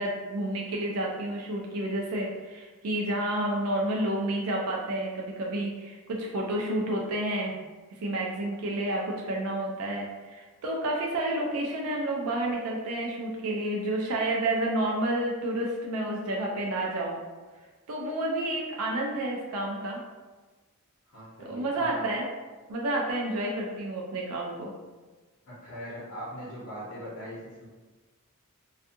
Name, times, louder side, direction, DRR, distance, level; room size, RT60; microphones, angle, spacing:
voice 1, 0.0-7.6 8.0-17.2 17.9-20.0 21.4-22.3 22.7-24.7, right 1 dB, 75° right, -1 dB, 0.4 m, -30 dB
voice 2, 21.1-21.9 25.4-27.7, equal, 65° left, -8 dB, 0.7 m, -41 dB
2.5 x 2.3 x 2.6 m, 1.3 s
head